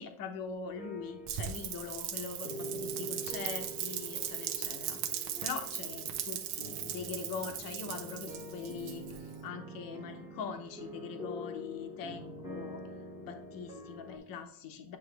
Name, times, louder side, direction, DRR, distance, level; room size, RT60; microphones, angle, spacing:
voice 1, 0.0-9.0 9.4-12.8 13.2-15.0, left 6 dB, 45° left, 6 dB, 0.9 m, -42 dB
sound 1, 0.6-14.2, equal, 10° right, 1.2 m, -45 dB
Rain, 1.3-9.3, right 10 dB, 50° right, 0.8 m, -38 dB
9.2 x 3.2 x 3.3 m, 0.71 s
cardioid pair, 170°, 49 cm